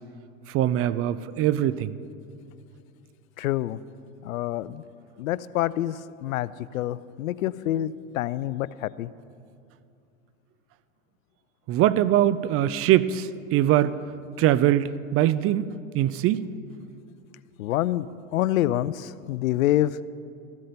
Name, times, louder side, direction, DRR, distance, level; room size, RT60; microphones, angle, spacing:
voice 1, 0.5-1.9 11.7-13.9 14.4-16.4, right 12 dB, 35° right, 16 dB, 0.5 m, -22 dB
voice 2, 3.4-3.8 4.2-4.8 5.2-9.1 17.6-18.1 18.3-20.0, left 14 dB, 80° left, 18 dB, 0.5 m, -27 dB
14.5 x 12.5 x 5.3 m, 2.5 s
hypercardioid pair, 95°, 40 cm